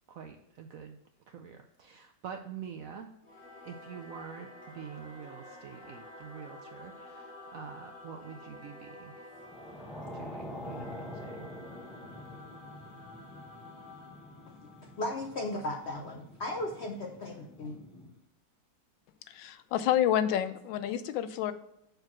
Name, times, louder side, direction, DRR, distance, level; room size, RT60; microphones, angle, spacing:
voice 1, 0.1-1.0 1.3-3.1 3.6-9.3 10.1-11.5, right 7 dB, 75° right, 5 dB, 0.8 m, -46 dB
Singing / Musical instrument, 3.2-16.1, left 2 dB, 30° left, 1.4 m, -51 dB
sound 1, 9.4-18.1, left 1 dB, ahead, 0.5 m, -46 dB
voice 2, 15.0-17.8, left 1 dB, 70° left, 2 dB, 0.6 m, -36 dB
voice 3, 19.3-21.5, left 11 dB, 90° left, 12 dB, 1.3 m, -29 dB
6.5 x 4.6 x 6.0 m, 0.82 s
omnidirectional pair, 2.0 m